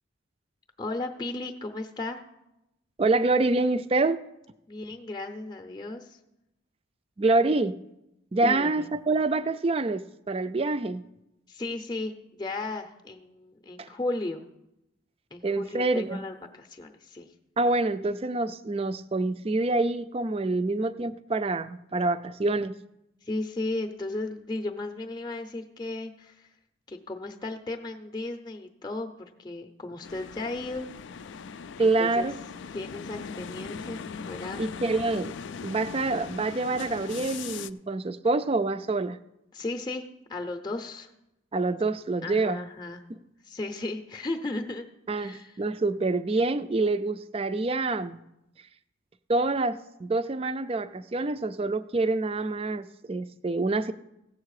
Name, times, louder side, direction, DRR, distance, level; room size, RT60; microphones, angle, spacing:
voice 1, 0.8-2.2 4.7-6.2 8.4-8.9 11.5-14.4 15.3-17.3 23.2-26.5 26.9-30.9 31.8-32.3 32.7-34.6 39.5-41.1 42.2-43.0 43.4-44.9 45.1-45.6, left 2 dB, 20° left, 6 dB, 0.6 m, -35 dB
voice 2, 3.0-4.2 7.2-7.8 8.3-11.0 13.8-13.9 15.4-16.2 17.6-22.8 31.8-32.4 34.6-35.3 35.6-39.2 41.5-42.6 43.1-43.2 45.1-48.2 49.3-53.9, right 2 dB, 30° right, 13 dB, 0.4 m, -26 dB
sound 1, 30.0-37.7, left 6 dB, 65° left, 0.4 m, -40 dB
15.5 x 7.4 x 4.8 m, 0.88 s
head